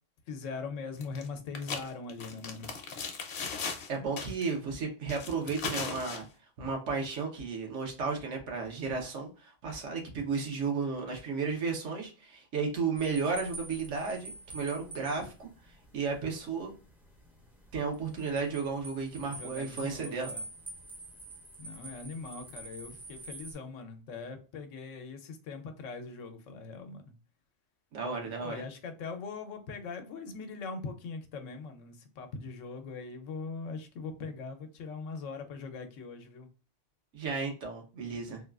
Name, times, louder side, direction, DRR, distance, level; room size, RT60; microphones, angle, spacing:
voice 1, 0.3-2.7 19.3-20.4 21.6-27.1 28.1-36.5, left 4 dB, 90° left, 1.0 m, -41 dB
sound 1, 1.0-1.3 1.5-3.9 4.2-4.5 5.1-6.2, left 5 dB, 65° left, 0.9 m, -37 dB
voice 2, 3.9-6.2 6.6-15.5 15.9-16.7 17.7-20.3 27.9-28.6 37.1-38.4, right 5 dB, 75° right, 1.2 m, -33 dB
sound 2, 13.0-23.5, right 2 dB, 5° right, 0.3 m, -47 dB
3.5 x 2.3 x 2.3 m
omnidirectional pair, 1.3 m